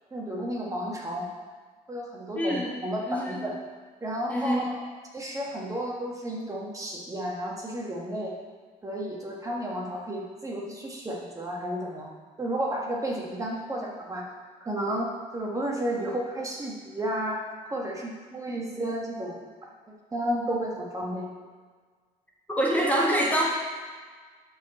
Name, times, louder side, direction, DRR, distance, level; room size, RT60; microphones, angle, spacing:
voice 1, 0.1-1.3 1.9-3.5 4.0-4.8 5.1-8.3 8.8-12.1 12.4-14.2 14.6-17.4 17.7-19.5 20.1-21.3, right 1 dB, 20° right, -3 dB, 1.6 m, -32 dB
voice 2, 2.3-2.7 3.1-3.4 4.3-4.6 22.5-23.4, equal, 10° left, -4 dB, 1.5 m, -25 dB
12.0 x 4.6 x 4.3 m, 1.5 s
cardioid pair, 110°, 17 cm